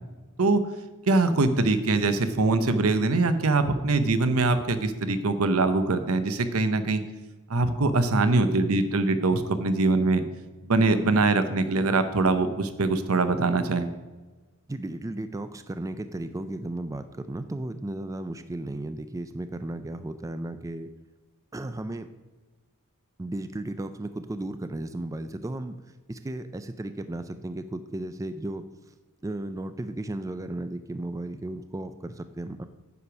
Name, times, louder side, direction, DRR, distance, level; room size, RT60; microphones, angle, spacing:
voice 1, 1.1-7.0 7.5-10.2 10.6-13.9, right 3 dB, 75° right, 10 dB, 0.8 m, -23 dB
voice 2, 14.7-20.9 21.5-22.1 23.2-25.8 26.1-28.6 29.2-32.6, right 1 dB, 15° right, 10 dB, 0.4 m, -34 dB
9.5 x 5.1 x 6.0 m, 1.2 s
head